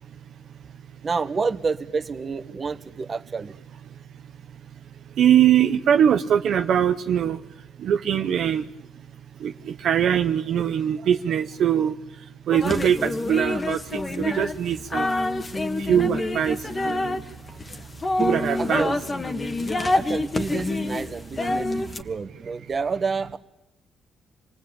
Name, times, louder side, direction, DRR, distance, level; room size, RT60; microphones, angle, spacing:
voice 1, 1.0-3.5 18.6-19.1 19.9-23.4, right 4 dB, 40° right, 8 dB, 1.4 m, -29 dB
voice 2, 5.2-7.4 7.8-8.6 9.4-11.9 12.5-15.1 15.8-17.2 18.2-18.8, right 9 dB, 70° right, 6 dB, 0.9 m, -22 dB
sound 1, 12.5-22.0, left 2 dB, 25° left, 1.8 m, -27 dB
27.0 x 19.0 x 8.8 m, 0.91 s
cardioid pair, 90°, 0 cm